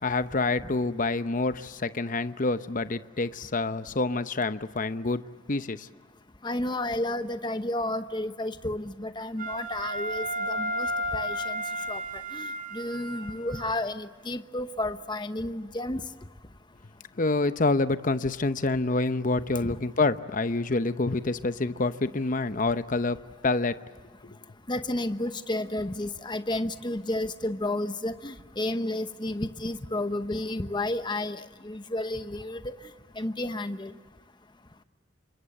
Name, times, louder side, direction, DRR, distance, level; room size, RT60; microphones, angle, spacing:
voice 1, 0.0-5.2 5.5-5.9 17.2-23.2 23.4-23.8 24.2-24.4, left 3 dB, 40° left, 12 dB, 0.8 m, -27 dB
voice 2, 6.4-16.0 19.6-19.8 24.7-32.7 33.2-33.9, left 1 dB, 25° left, 10 dB, 1.0 m, -32 dB
Wind instrument woodwind instrument, 9.4-13.7, equal, 45° right, 5.2 m, -33 dB
28.5 x 24.5 x 7.8 m, 1.5 s
head